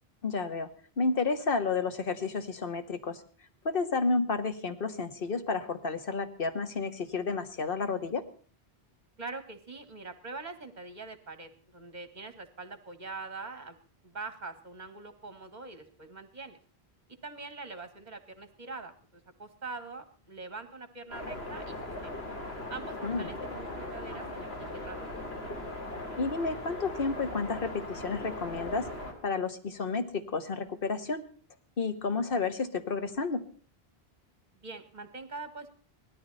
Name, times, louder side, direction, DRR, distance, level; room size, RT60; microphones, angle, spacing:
voice 1, 0.2-0.7 1.0-3.2 3.6-8.2 23.0-23.2 26.2-28.9 29.2-31.2 31.8-33.4, left 4 dB, 60° left, 9 dB, 1.5 m, -31 dB
voice 2, 9.2-13.8 14.0-16.6 17.2-22.2 22.7-25.3 34.5-35.7, right 3 dB, 45° right, 9 dB, 1.8 m, -43 dB
sound 1, 21.1-29.1, left 1 dB, 75° left, 3.3 m, -39 dB
18.5 x 13.5 x 4.2 m, 0.42 s
omnidirectional pair, 1.1 m